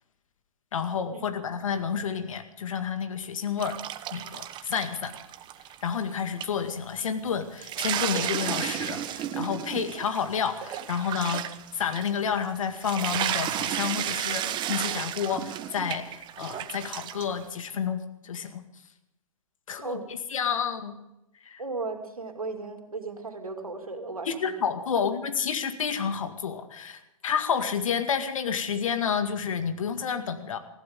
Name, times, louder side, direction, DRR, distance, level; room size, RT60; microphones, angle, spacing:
voice 1, 0.7-3.8 4.1-5.1 5.8-11.5 11.7-18.6 19.7-20.0 20.3-20.9 21.5-21.6 24.3-30.6, left 7 dB, 70° left, 8 dB, 2.1 m, -30 dB
sound 1, 3.6-6.1 6.4-6.5 7.1-7.2 7.4-17.4, right 11 dB, 25° right, 1.0 m, -33 dB
voice 2, 21.6-24.5, right 3 dB, 90° right, 5 dB, 2.8 m, -36 dB
20.0 x 15.5 x 3.7 m, 0.91 s
hypercardioid pair, 115°, 18 cm